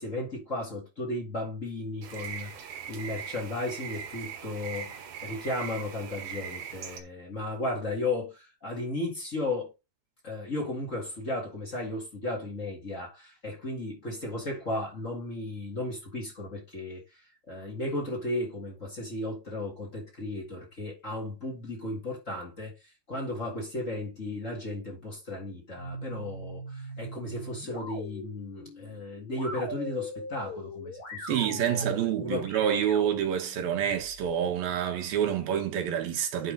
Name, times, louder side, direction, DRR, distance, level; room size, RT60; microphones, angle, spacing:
voice 1, 0.0-9.7 10.2-17.0 17.5-22.7 23.1-31.8 32.2-32.5, left 2 dB, 20° left, 3.5 m, -35 dB
sound 1, 2.0-7.0, right 8 dB, 65° right, 3.0 m, -40 dB
sound 2, 25.7-34.3, equal, 50° left, 5.7 m, -41 dB
voice 2, 31.3-36.5, right 9 dB, 85° right, 3.5 m, -28 dB
9.7 x 5.5 x 4.1 m
omnidirectional pair, 4.1 m